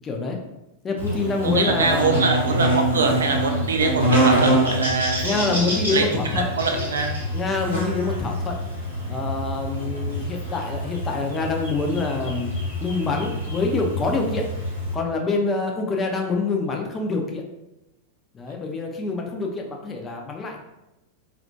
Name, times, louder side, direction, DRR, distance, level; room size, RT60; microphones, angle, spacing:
voice 1, 0.0-0.4 0.8-2.2 5.2-6.4 7.3-8.6 9.1-12.5 12.8-14.4 14.9-17.4 18.3-20.7, left 3 dB, 20° left, 2 dB, 0.4 m, -26 dB
Buzz, 1.0-14.9, right 1 dB, 90° right, 0.8 m, -26 dB
voice 2, 1.4-5.6 5.9-6.0 6.3-7.1, right 4 dB, 70° right, 3 dB, 0.4 m, -23 dB
2.2 x 2.1 x 2.6 m, 0.93 s
figure-of-eight pair, 90°, 0 cm